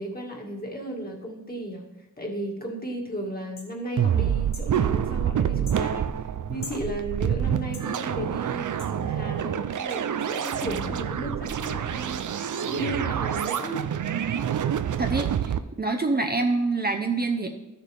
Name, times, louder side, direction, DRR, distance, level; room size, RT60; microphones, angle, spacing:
voice 1, 0.0-1.9 2.2-6.1 6.5-13.8, right 1 dB, 30° left, 0 dB, 1.9 m, -34 dB
sound 1, 3.6-3.7 4.5-4.7 5.6-5.8 6.6-6.8 7.7-7.9 8.8-8.9 9.9-10.0, left 4 dB, 85° left, 1.4 m, -42 dB
sound 2, 4.0-15.6, right 9 dB, 70° right, 0.5 m, -27 dB
voice 2, 15.0-17.5, right 3 dB, 30° right, 4 dB, 0.8 m, -26 dB
13.0 x 6.7 x 3.4 m, 1.0 s
cardioid pair, 65°, 32 cm